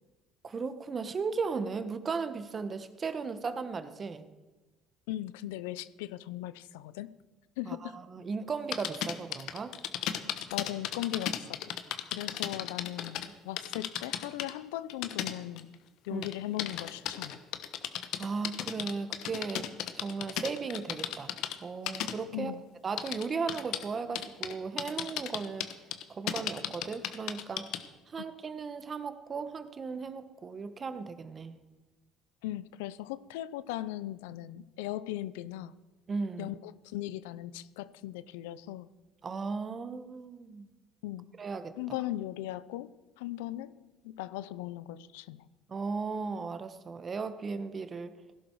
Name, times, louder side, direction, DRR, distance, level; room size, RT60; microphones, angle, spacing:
voice 1, 0.4-4.2 7.6-9.7 16.1-16.3 18.2-19.7 20.0-21.4 21.6-22.6 22.8-25.7 26.1-27.7 28.1-31.6 36.1-36.5 39.2-40.7 41.4-41.7 45.7-48.1, right 4 dB, 35° right, 11 dB, 1.2 m, -36 dB
voice 2, 5.1-7.1 7.6-7.9 10.5-11.7 12.1-15.7 16.1-17.4 22.3-22.6 32.4-35.7 36.4-38.9 41.0-41.3 41.8-45.5, left 14 dB, 85° left, 17 dB, 0.5 m, -38 dB
sound 1, 8.7-13.3 13.6-14.5 14.9-15.7 16.2-21.5 21.9-22.1 23.0-23.8 24.1-24.5 24.8-27.9, left 11 dB, 70° left, 1.1 m, -34 dB
17.5 x 11.5 x 4.7 m, 1.2 s
supercardioid pair, 80°, 0 cm